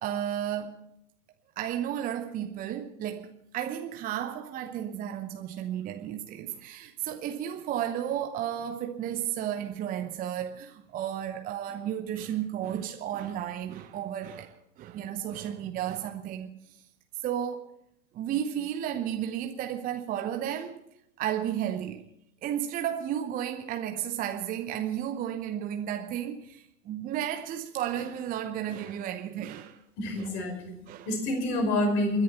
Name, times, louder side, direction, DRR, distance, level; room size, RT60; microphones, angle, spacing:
voice 1, 0.0-0.8 1.6-16.6 17.2-17.7 18.1-20.8 21.2-22.1 22.4-29.8 30.2-30.3 30.9-31.1, right 10 dB, 15° right, 0.8 m, -33 dB
voice 2, 30.0-32.2, left 1 dB, 45° left, 5.4 m, -28 dB
29.0 x 11.0 x 4.3 m
figure-of-eight pair, 105°, 49 cm